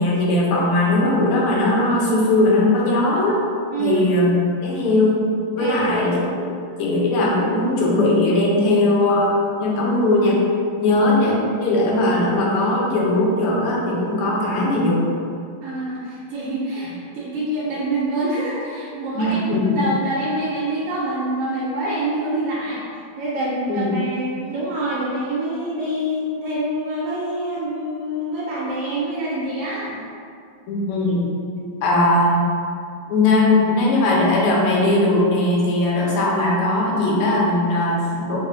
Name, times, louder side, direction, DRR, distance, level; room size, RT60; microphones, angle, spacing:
voice 1, 0.0-3.4 3.8-5.2 5.6-6.5 6.8-10.4 10.8-15.2 19.1-19.8 23.7-24.0 30.7-32.4 33.1-38.5, left 2 dB, 90° left, -4 dB, 1.5 m, -19 dB
voice 2, 3.7-4.1 5.6-5.9 10.9-11.0 15.6-22.9 23.2-30.0, right 1 dB, 90° right, -6 dB, 1.6 m, -26 dB
4.4 x 2.4 x 2.4 m, 2.3 s
omnidirectional pair, 2.4 m